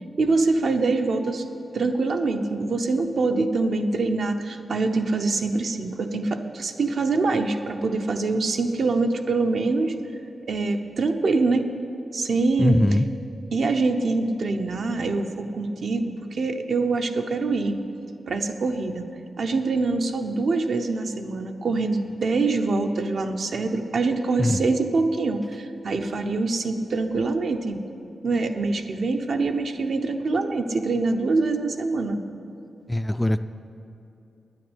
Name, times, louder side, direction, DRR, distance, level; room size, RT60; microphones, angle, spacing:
voice 1, 0.2-1.4 1.7-10.0 10.5-11.7 12.1-12.8 13.5-17.8 18.3-19.1 19.4-27.8 28.2-32.2, right 3 dB, 65° right, 5 dB, 0.8 m, -24 dB
voice 2, 12.6-13.1 24.4-24.6 32.9-33.4, left 1 dB, 15° left, 10 dB, 0.3 m, -21 dB
9.8 x 9.3 x 8.0 m, 2.8 s
wide cardioid pair, 120°, 0 cm